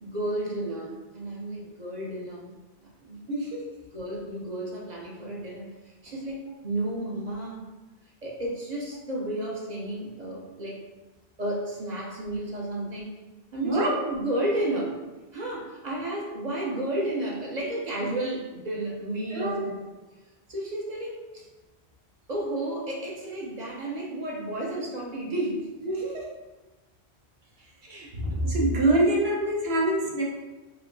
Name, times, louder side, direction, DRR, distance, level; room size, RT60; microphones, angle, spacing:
voice 1, 0.0-2.6 3.0-3.2 3.9-6.4 6.6-7.7 8.2-10.8 11.4-13.2 13.5-15.0 15.3-19.9 20.5-21.5 22.3-25.7 27.8-28.2 28.6-28.7, right 1 dB, 45° right, -3 dB, 0.7 m, -32 dB
voice 2, 3.3-3.6 13.6-13.9 19.3-19.6 25.8-26.2 28.1-30.2, right 1 dB, 65° right, -4 dB, 1.1 m, -25 dB
4.2 x 2.7 x 2.6 m, 1.2 s
omnidirectional pair, 1.1 m